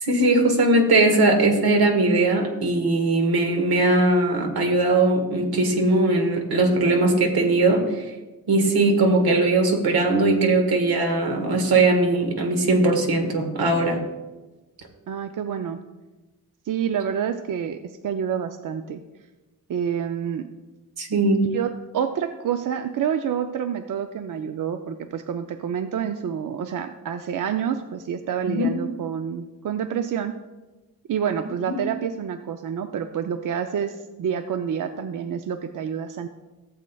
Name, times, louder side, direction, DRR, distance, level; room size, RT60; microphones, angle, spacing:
voice 1, 0.0-8.0 8.5-14.0 21.0-21.5 28.5-28.7 31.7-31.8, right 2 dB, 80° right, 3 dB, 1.5 m, -20 dB
voice 2, 15.1-15.8 16.7-19.0 19.7-20.5 21.5-30.3 31.1-36.3, right 8 dB, 60° right, 8 dB, 0.5 m, -28 dB
15.5 x 7.5 x 2.3 m, 1.1 s
wide cardioid pair, 140°, 37 cm